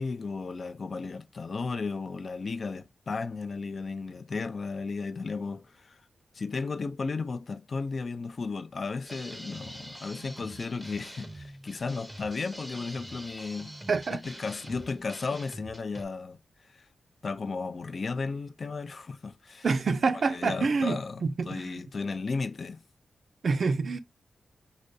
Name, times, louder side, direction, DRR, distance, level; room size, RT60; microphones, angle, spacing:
voice 1, 0.0-6.0 6.3-13.7 14.1-16.4 16.7-16.9 17.2-19.7 20.3-21.2 21.5-22.8, left 4 dB, 55° left, 0.4 m, -34 dB
sound 1, 9.0-16.1, right 1 dB, 10° right, 0.6 m, -45 dB
voice 2, 13.9-14.2 19.6-21.8 23.4-24.0, right 4 dB, 60° right, 0.4 m, -27 dB
4.8 x 2.2 x 2.5 m
cardioid pair, 75°, 0 cm